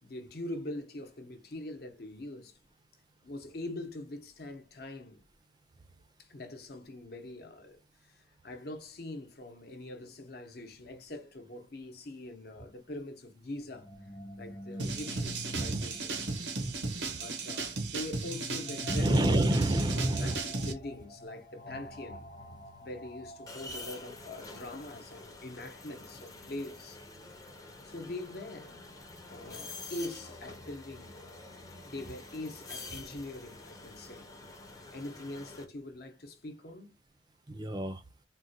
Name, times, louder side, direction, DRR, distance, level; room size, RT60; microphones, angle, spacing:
voice 1, 0.0-2.6 3.2-5.2 6.2-13.9 14.4-16.2 17.1-19.2 19.9-22.3 22.8-27.0 27.8-28.7 29.3-31.2 31.9-34.3 34.9-37.0, left 2 dB, 60° left, 0.8 m, -43 dB
sound 1, 13.6-25.4, equal, 40° left, 1.0 m, -47 dB
sound 2, 14.8-20.7, right 3 dB, 90° right, 0.9 m, -35 dB
voice 2, 15.5-15.9 17.1-17.2 18.9-20.4 37.5-38.0, right 1 dB, 25° right, 0.4 m, -28 dB
sound 3, 23.5-35.6, left 3 dB, 20° left, 0.6 m, -47 dB
3.8 x 2.1 x 2.7 m
head